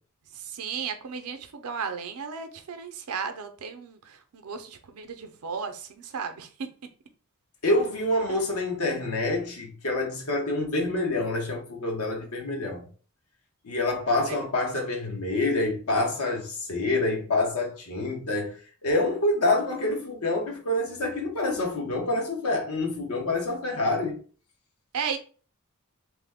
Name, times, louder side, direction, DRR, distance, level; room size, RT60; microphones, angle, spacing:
voice 1, 0.3-6.7 8.3-8.4 14.2-14.4 24.9-25.2, right 6 dB, 85° right, 0.5 m, -35 dB
voice 2, 7.6-12.9 13.6-18.5 18.8-24.2, left 2 dB, 80° left, 1.0 m, -27 dB
3.0 x 2.1 x 3.4 m
head